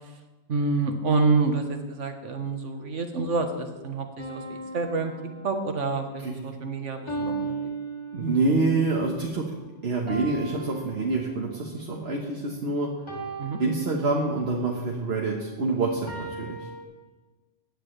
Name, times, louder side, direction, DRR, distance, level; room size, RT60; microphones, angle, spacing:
voice 1, 0.5-5.1 5.4-7.7 13.4-13.6, right 3 dB, 85° right, 5 dB, 1.6 m, -27 dB
sound 1, 4.2-6.0 7.1-8.7 10.1-11.7 13.1-14.6 16.1-16.8, right 2 dB, 25° left, 2.5 m, -37 dB
voice 2, 8.1-9.5 9.8-12.9 13.6-16.7, right 3 dB, 60° right, -1 dB, 1.5 m, -26 dB
16.5 x 9.9 x 3.3 m, 1.2 s
omnidirectional pair, 1.2 m